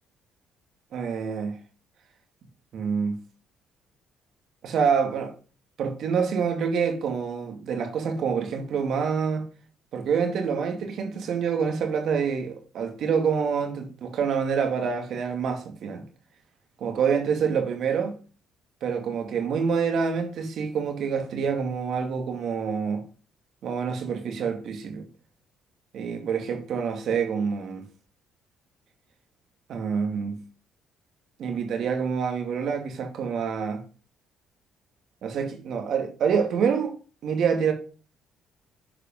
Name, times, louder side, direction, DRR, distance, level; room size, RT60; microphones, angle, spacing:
voice 1, 0.9-1.6 2.7-3.2 4.6-5.3 5.8-9.5 9.9-16.1 16.8-18.2 18.8-23.1 23.6-25.1 25.9-27.9 29.7-30.4 31.4-33.8 35.2-36.9 37.2-37.7, right 6 dB, 65° right, 2.3 m, -27 dB
10.0 x 5.0 x 5.4 m
cardioid pair, 85°, 0 cm